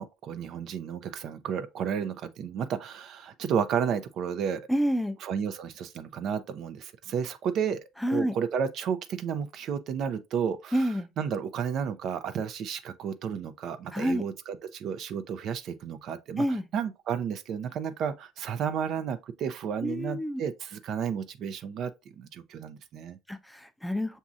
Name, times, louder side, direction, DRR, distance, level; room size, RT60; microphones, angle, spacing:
voice 1, 0.0-4.6 5.2-10.9 11.2-16.4 16.7-21.9 22.2-23.2, right 7 dB, 60° right, 0.5 m, -32 dB
voice 2, 4.7-5.2 8.0-8.3 10.7-11.1 13.9-14.2 16.4-16.7 19.8-20.4 23.3-24.2, equal, 5° left, 0.5 m, -28 dB
6.0 x 2.7 x 2.4 m
supercardioid pair, 75°, 0 cm